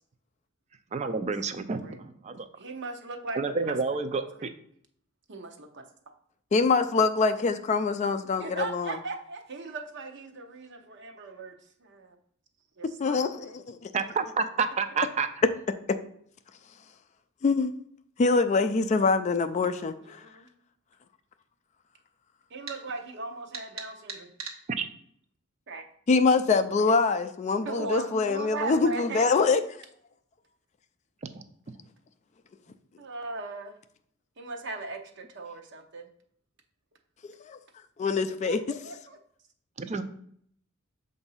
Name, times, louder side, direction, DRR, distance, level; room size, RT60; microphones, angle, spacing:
voice 1, 0.9-2.5 3.4-4.5 13.9-15.3 24.8-24.9 39.8-40.0, right 4 dB, 35° right, 10 dB, 0.4 m, -29 dB
voice 2, 2.6-4.5 5.3-5.8 8.4-11.5 11.8-12.2 12.8-13.6 20.0-20.5 22.5-24.3 25.7-25.8 26.1-26.5 27.6-29.3 33.0-33.7 34.4-36.1 38.4-38.6 38.8-39.2, right 3 dB, 55° right, 4 dB, 0.8 m, -38 dB
voice 3, 6.5-8.9 13.0-13.9 17.4-17.7 18.2-20.2 26.1-29.6 37.2-37.6 38.0-38.6, left 4 dB, 35° left, 10 dB, 0.3 m, -24 dB
sound 1, 22.7-22.8 23.5-24.6, right 5 dB, 80° right, 1.1 m, -38 dB
6.9 x 2.6 x 5.5 m, 0.66 s
head